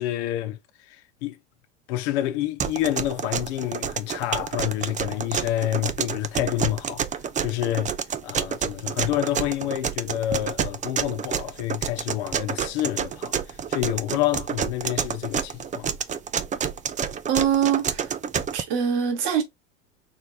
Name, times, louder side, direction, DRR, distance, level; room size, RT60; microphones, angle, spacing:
voice 1, 0.0-1.4 1.9-7.0 7.4-7.9 8.2-15.9, left 13 dB, 65° left, 1.0 m, -28 dB
sound 1, 2.6-18.6, right 7 dB, 20° right, 0.5 m, -29 dB
voice 2, 17.3-18.2 18.5-19.4, right 8 dB, 60° right, 1.8 m, -23 dB
4.6 x 3.3 x 2.8 m
hypercardioid pair, 85°, 37 cm